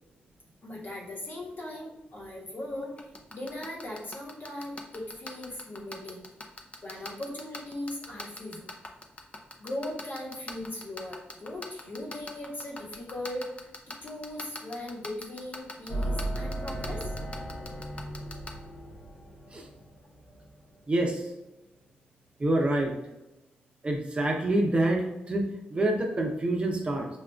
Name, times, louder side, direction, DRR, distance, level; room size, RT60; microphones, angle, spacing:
voice 1, 0.6-6.2 6.8-8.7 9.6-13.5 13.9-17.0, left 1 dB, 55° left, -3 dB, 1.3 m, -39 dB
sound 1, 3.0-18.5, left 2 dB, 35° left, 0.6 m, -39 dB
sound 2, 15.9-20.6, right 1 dB, 80° left, 0.9 m, -36 dB
voice 2, 20.9-21.2 22.4-22.9 23.8-27.1, right 1 dB, 30° right, 1 dB, 0.7 m, -27 dB
5.7 x 2.4 x 2.3 m, 0.97 s
cardioid pair, 60°, 4 cm